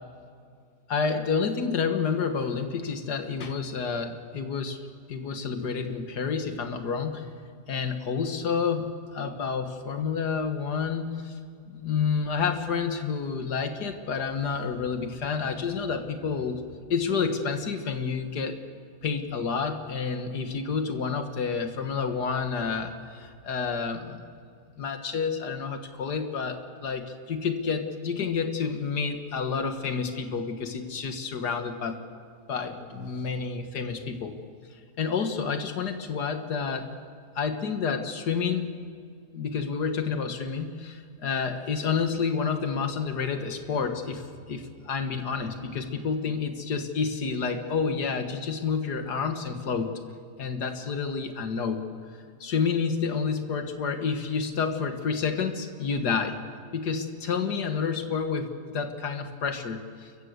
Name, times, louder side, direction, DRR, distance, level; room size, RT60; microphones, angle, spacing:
voice 1, 0.9-4.8 5.1-7.3 7.7-11.4 11.7-18.6 19.0-24.2 24.8-32.0 32.5-34.3 35.0-36.9 37.4-38.7 39.3-49.9 50.4-51.8 52.4-56.4 56.7-60.1, left 5 dB, 80° left, 7 dB, 2.1 m, -29 dB
29.0 x 15.0 x 8.1 m, 2.2 s
omnidirectional pair, 1.7 m